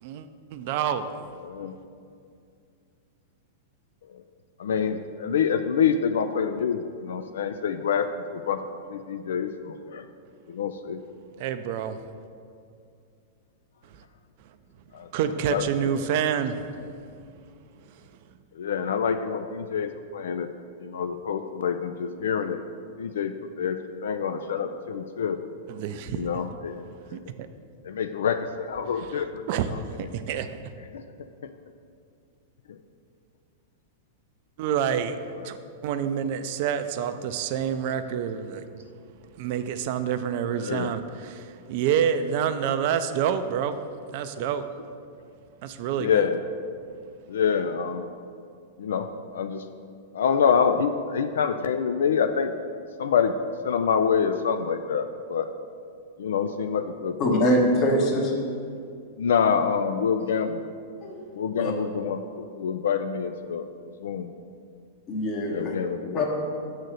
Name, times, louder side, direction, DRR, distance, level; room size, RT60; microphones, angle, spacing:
voice 1, 0.0-1.3 11.4-12.0 13.9-14.0 15.1-16.7 17.9-18.0 25.7-26.4 27.1-27.5 29.0-30.7 34.6-35.6 35.8-38.9 39.3-43.8 44.1-44.7 45.6-46.3, right 8 dB, 55° right, 10 dB, 0.4 m, -28 dB
voice 2, 1.5-1.8 4.0-4.2 4.6-8.6 8.9-10.1 10.5-11.0 14.9-15.9 18.5-20.5 20.8-22.6 23.0-25.4 26.1-27.2 27.8-30.0 30.9-31.0 32.7-32.8 40.5-40.9 44.3-44.5 46.0-46.4 47.3-48.2 48.8-49.1 49.3-49.7 50.1-52.6 53.0-53.3 53.6-55.5 56.2-57.8 59.2-60.6 61.3-63.7 64.0-64.3 65.5-66.2, left 7 dB, 75° left, 8 dB, 0.3 m, -27 dB
voice 3, 57.2-58.3 61.0-61.1 61.6-61.7 65.1-65.7 66.1-66.2, equal, 40° left, -1 dB, 1.5 m, -23 dB
6.4 x 4.0 x 6.4 m, 2.4 s
hypercardioid pair, 110°, 0 cm